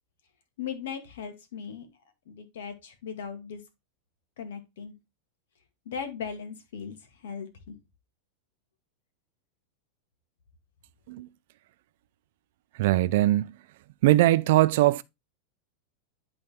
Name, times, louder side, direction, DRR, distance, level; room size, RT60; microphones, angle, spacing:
voice 1, 0.6-1.9 2.3-3.6 4.4-5.0 5.9-7.8, left 7 dB, 85° left, 1.8 m, -38 dB
voice 2, 12.8-13.5 14.0-15.0, right 16 dB, 60° right, 0.4 m, -21 dB
10.5 x 3.9 x 3.5 m
supercardioid pair, 170°, 0 cm